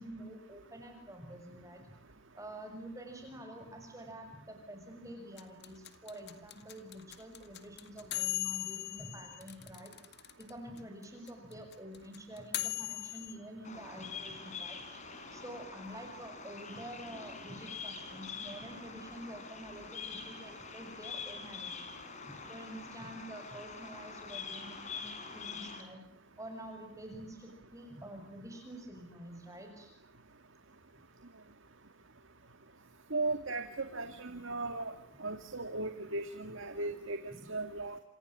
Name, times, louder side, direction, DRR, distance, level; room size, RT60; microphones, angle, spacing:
voice 1, 0.0-1.9 2.4-9.9 10.4-14.8 15.3-22.0 22.3-26.0 26.4-29.9 37.3-37.5, right 1 dB, 15° right, 5 dB, 6.4 m, -48 dB
sound 1, 5.4-10.5 10.8-10.9 11.0-13.3, left 16 dB, 55° left, 2.0 m, -38 dB
Bird vocalization bird call bird song, 13.6-25.8, left 5 dB, 35° left, 5.2 m, -45 dB
voice 2, 33.1-34.9 35.2-38.0, right 2 dB, 70° right, 7 dB, 2.2 m, -37 dB
29.0 x 27.5 x 7.5 m, 0.66 s
head